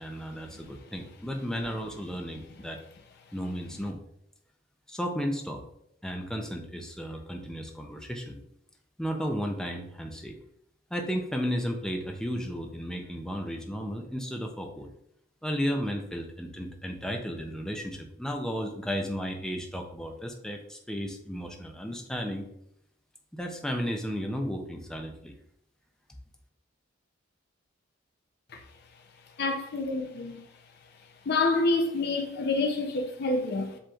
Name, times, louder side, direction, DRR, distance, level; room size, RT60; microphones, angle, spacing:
voice 1, 0.0-2.8 3.3-4.0 4.9-5.6 6.0-8.4 9.0-10.3 10.9-14.9 15.4-22.5 23.3-25.3, equal, 5° left, 0.5 m, -34 dB
voice 2, 29.4-30.4 31.3-33.8, left 3 dB, 50° left, 0.5 m, -27 dB
7.5 x 3.0 x 2.3 m
head